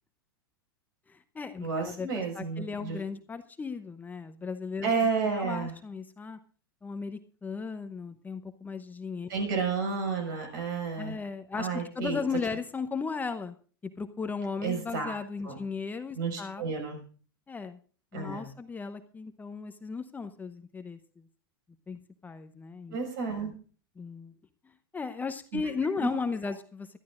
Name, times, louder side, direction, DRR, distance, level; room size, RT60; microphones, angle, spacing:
voice 1, 1.1-4.9 5.4-6.4 6.8-9.6 11.0-13.6 14.0-16.6 17.5-17.8 18.1-21.0 21.9-23.0 24.0-24.3 24.9-26.9, left 5 dB, 15° left, 10 dB, 0.8 m, -36 dB
voice 2, 1.6-3.0 4.8-5.7 9.3-11.2 11.6-12.2 14.6-15.2 15.4-15.6 16.1-17.0 18.1-18.5 22.9-23.5 26.0-26.1, right 5 dB, 65° right, 3 dB, 5.6 m, -31 dB
21.5 x 12.0 x 2.5 m, 0.40 s
hypercardioid pair, 110°, 12 cm